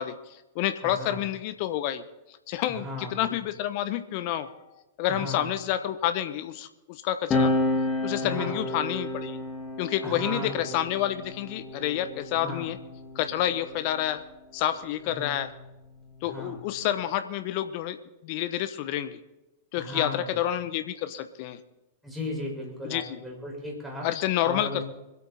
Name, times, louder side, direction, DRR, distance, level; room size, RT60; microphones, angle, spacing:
voice 1, 0.0-2.0 2.5-2.9 3.1-7.5 8.0-9.4 9.8-12.8 13.1-14.2 14.5-15.5 16.2-18.0 18.2-19.2 19.7-21.6 22.9-23.2 24.0-24.8, left 12 dB, 50° left, 11 dB, 1.0 m, -29 dB
voice 2, 0.8-1.2 2.7-3.3 5.1-5.5 8.2-8.6 10.0-10.7 12.4-12.7 15.0-15.4 16.2-16.6 19.8-20.4 22.0-24.1 24.4-24.8, left 1 dB, 5° right, -2 dB, 5.5 m, -36 dB
sound 1, 7.3-14.2 15.2-17.0, left 2 dB, 25° left, 1.9 m, -32 dB
25.0 x 8.8 x 4.3 m, 0.99 s
figure-of-eight pair, 100°, 0 cm